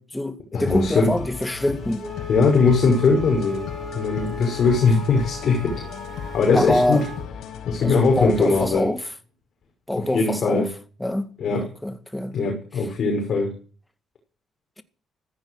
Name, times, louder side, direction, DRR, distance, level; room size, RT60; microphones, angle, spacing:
voice 1, 0.0-2.1 6.5-7.1 7.8-9.0 9.9-10.7 11.0-12.4, left 1 dB, 10° left, 2.0 m, -25 dB
voice 2, 0.5-1.1 2.3-3.6 3.9-5.8 6.1-7.0 7.6-8.9 10.1-10.7 11.4-11.7 12.3-13.5, left 4 dB, 60° left, 6.0 m, -20 dB
sound 1, 0.7-8.7, left 8 dB, 75° left, 5.1 m, -36 dB
Wind instrument woodwind instrument, 2.0-7.3, left 2 dB, 35° right, 2.9 m, -37 dB
15.5 x 14.0 x 6.4 m
cardioid pair, 90°, 0 cm